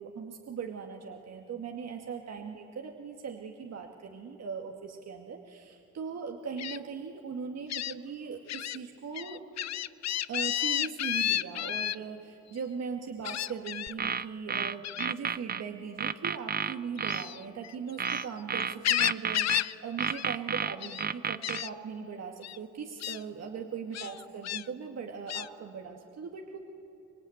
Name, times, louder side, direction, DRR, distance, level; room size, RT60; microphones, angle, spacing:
voice 1, 0.0-9.4 10.3-26.6, right 6 dB, 55° right, 2 dB, 2.2 m, -39 dB
Gull seagull, 6.6-6.8 7.7-7.9 8.5-8.8 9.1-12.0 13.2-13.9 14.8-15.1 17.0-18.2 18.6-19.7 20.0-20.3 20.6-21.1 21.4-21.7 22.4-22.6 23.0-23.2 23.9-24.6 25.3-25.5, left 12 dB, 60° left, 0.7 m, -31 dB
sound 1, 13.9-15.6 16.0-17.3 18.0-19.6 20.0-21.6, right 6 dB, 30° right, 0.7 m, -31 dB
25.5 x 22.0 x 9.5 m, 2.8 s
cardioid pair, 90°, 30 cm